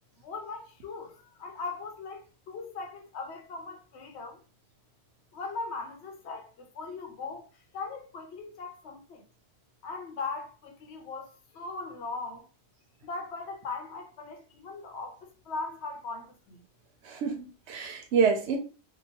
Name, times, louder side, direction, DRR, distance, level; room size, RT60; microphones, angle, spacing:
voice 1, 0.2-4.4 5.3-9.2 9.8-12.5 13.0-16.6, left 4 dB, 85° left, 0.9 m, -39 dB
voice 2, 17.0-18.6, right 5 dB, 85° right, 0.9 m, -27 dB
2.8 x 2.2 x 2.8 m
omnidirectional pair, 1.1 m